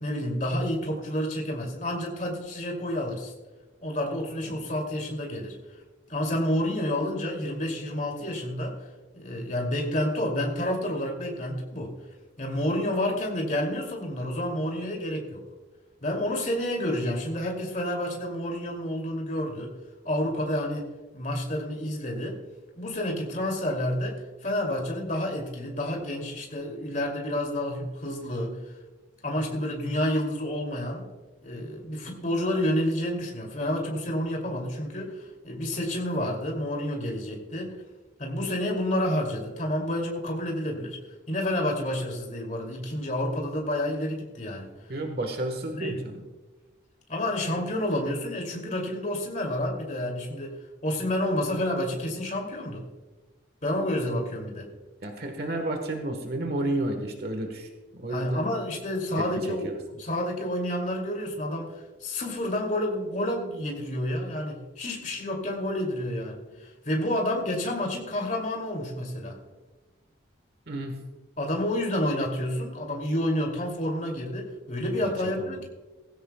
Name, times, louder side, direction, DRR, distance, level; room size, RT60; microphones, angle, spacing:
voice 1, 0.0-3.3 3.8-5.6 6.1-8.8 9.1-11.9 12.4-15.4 16.0-19.8 20.0-20.9 21.1-22.4 22.8-28.6 29.2-31.1 31.4-37.8 38.2-41.0 41.3-44.7 45.7-46.0 47.1-50.6 50.8-52.9 53.6-54.7 58.1-66.4 66.8-69.4 71.4-75.7, left 1 dB, 40° left, 1 dB, 2.6 m, -29 dB
voice 2, 44.9-46.2 55.0-58.5 59.2-59.8 70.7-71.1 75.0-75.6, right 1 dB, 55° right, 5 dB, 1.3 m, -32 dB
19.0 x 16.0 x 2.3 m, 1.2 s
head